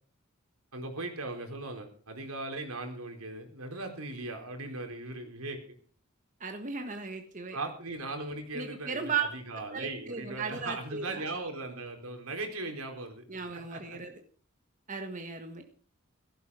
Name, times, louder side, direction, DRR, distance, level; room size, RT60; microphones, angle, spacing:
voice 1, 0.7-5.6 7.5-13.2 13.5-14.0, right 2 dB, 85° right, 4 dB, 4.1 m, -38 dB
voice 2, 6.4-7.6 8.5-9.3 9.7-11.2 13.3-14.2 14.9-15.6, right 5 dB, 35° right, 5 dB, 1.5 m, -36 dB
17.0 x 14.0 x 4.9 m, 0.41 s
head